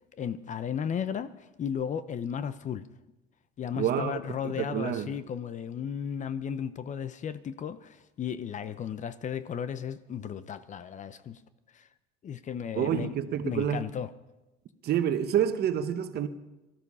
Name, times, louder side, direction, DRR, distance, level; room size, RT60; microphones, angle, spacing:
voice 1, 0.1-2.9 3.6-11.4 11.7-11.9 12.2-13.1 13.4-14.1, left 8 dB, 35° left, 0.8 m, -35 dB
voice 2, 3.8-5.1 12.7-13.8 14.8-16.3, right 9 dB, 50° right, 1.3 m, -28 dB
19.5 x 13.5 x 5.6 m
supercardioid pair, 110°, 21 cm